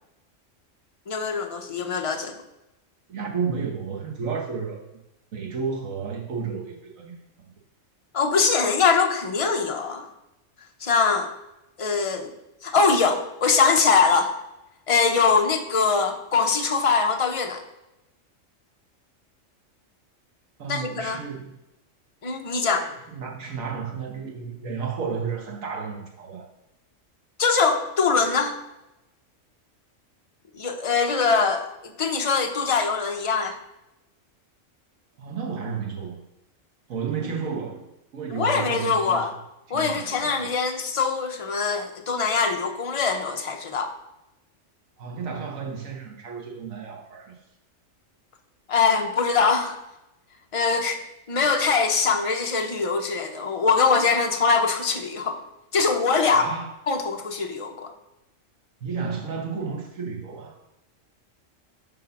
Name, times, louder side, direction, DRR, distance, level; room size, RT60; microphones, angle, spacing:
voice 1, 1.1-2.3 8.1-10.1 10.8-11.3 11.8-12.3 12.6-14.3 14.9-17.6 20.7-21.2 22.2-22.9 27.4-28.5 30.5-33.6 38.3-39.3 39.7-43.9 48.7-49.8 50.5-51.0 51.3-55.4 55.7-56.4 56.9-57.9, left 5 dB, 35° left, 5 dB, 0.6 m, -22 dB
voice 2, 3.1-4.8 5.3-7.1 20.6-21.5 22.8-26.5 35.2-36.2 36.9-37.9 38.1-39.2 39.7-40.5 45.0-47.3 56.3-56.7 58.8-60.6, right 6 dB, 85° right, 0 dB, 1.6 m, -32 dB
7.7 x 3.8 x 5.8 m, 0.91 s
omnidirectional pair, 1.4 m